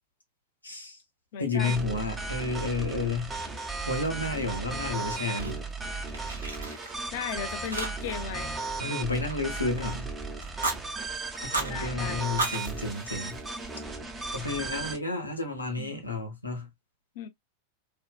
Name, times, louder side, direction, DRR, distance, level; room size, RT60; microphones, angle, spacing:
voice 1, 0.6-1.0 1.4-3.3 3.9-5.6 8.8-10.1 11.4-13.4 14.3-16.7, left 3 dB, 85° left, 0.8 m, -31 dB
voice 2, 1.3-1.9 7.1-8.5 11.7-12.3 15.8-16.0 17.2-17.3, left 8 dB, 50° left, 0.6 m, -36 dB
sound 1, 1.6-15.0, right 3 dB, 15° right, 0.6 m, -36 dB
Fire, 4.7-5.8 6.1-7.3 7.7-8.3 8.5-9.9 10.4-10.8 11.3-11.7 12.2-13.8, right 2 dB, 75° right, 0.7 m, -35 dB
2.6 x 2.2 x 2.2 m
figure-of-eight pair, 90°, 0 cm